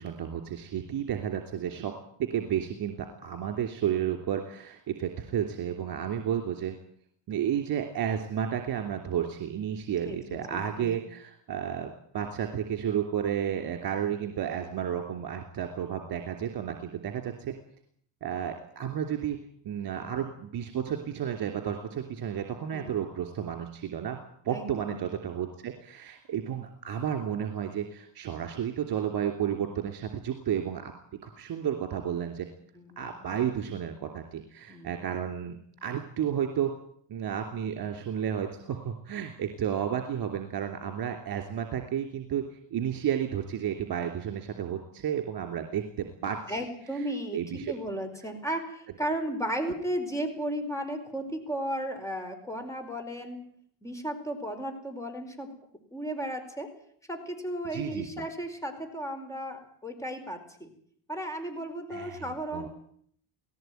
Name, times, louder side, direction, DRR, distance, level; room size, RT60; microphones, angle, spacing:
voice 1, 0.0-1.9 2.2-6.8 7.3-17.5 18.2-19.4 19.6-24.2 24.4-30.9 31.2-32.5 33.0-36.7 37.1-42.4 42.7-45.8 46.2-46.6 46.9-47.0 47.3-47.7 57.7-58.2 61.9-62.7, right 9 dB, 50° right, 5 dB, 3.1 m, -32 dB
voice 2, 10.0-11.0 22.7-23.0 24.5-25.0 32.7-33.0 34.7-35.0 46.5-47.4 47.7-53.4 53.8-55.5 55.9-56.7 57.1-60.7 61.1-62.7, right 1 dB, 5° left, 6 dB, 4.8 m, -35 dB
19.0 x 17.0 x 9.3 m, 0.63 s
cardioid pair, 100°, 45 cm